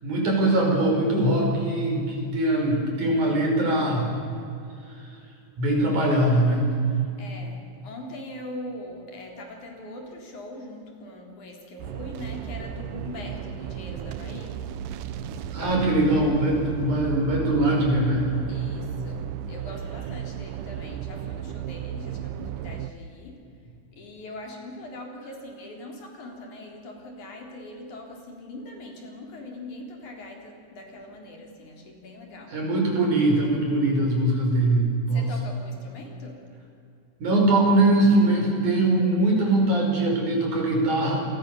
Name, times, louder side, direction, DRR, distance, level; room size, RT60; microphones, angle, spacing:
voice 1, 0.0-4.1 5.6-6.7 15.5-18.2 32.5-35.3 37.2-41.3, right 1 dB, 70° right, 0 dB, 7.3 m, -22 dB
voice 2, 7.2-14.6 18.5-23.4 24.0-32.6 35.1-36.4, left 1 dB, 70° left, 1 dB, 5.1 m, -41 dB
sound 1, 11.8-22.9, right 9 dB, 85° right, 2.5 m, -34 dB
28.0 x 22.5 x 7.1 m, 2.6 s
omnidirectional pair, 3.6 m